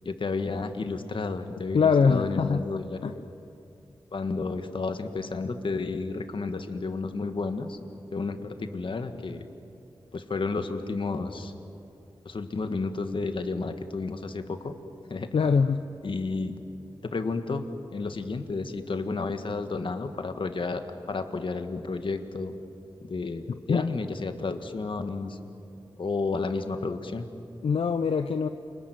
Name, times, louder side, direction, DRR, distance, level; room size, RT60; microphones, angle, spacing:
voice 1, 0.0-3.3 4.1-7.8 8.1-9.4 10.1-11.5 12.2-14.8 15.1-15.3 16.0-16.6 17.0-22.5 23.1-25.4 26.0-27.3, left 3 dB, 65° left, 7 dB, 1.8 m, -31 dB
voice 2, 1.7-2.6 3.0-3.1 15.3-15.8 23.7-23.9 27.6-28.5, left 5 dB, 80° left, 8 dB, 0.7 m, -23 dB
28.5 x 21.0 x 9.3 m, 2.7 s
wide cardioid pair, 70°, 9 cm